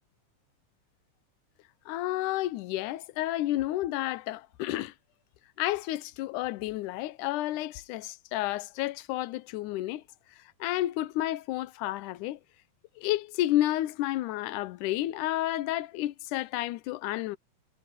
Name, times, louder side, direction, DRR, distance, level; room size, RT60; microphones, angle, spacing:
voice 1, 1.9-4.9 5.6-10.0 10.6-12.4 13.0-17.4, left 15 dB, 80° left, 2.2 m, -31 dB
omnidirectional pair, 3.6 m